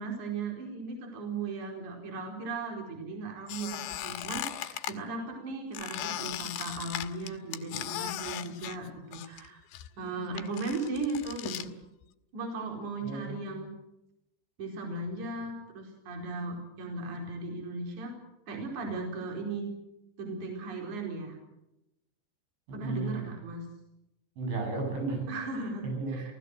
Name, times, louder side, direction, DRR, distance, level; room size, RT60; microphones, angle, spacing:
voice 1, 0.0-9.6 10.0-11.7 12.3-13.7 14.6-18.1 18.5-19.7 20.2-21.4 22.7-23.6 25.3-25.8 26.1-26.3, right 3 dB, 45° right, 1 dB, 5.7 m, -37 dB
Squeak, 3.5-4.9 5.7-9.5 9.7-11.7, left 12 dB, 75° left, 3.2 m, -38 dB
voice 2, 13.0-13.6 22.7-23.3 24.4-25.3 25.8-26.3, right 3 dB, 85° right, 2 dB, 10.0 m, -34 dB
29.0 x 17.0 x 7.9 m, 0.88 s
omnidirectional pair, 5.2 m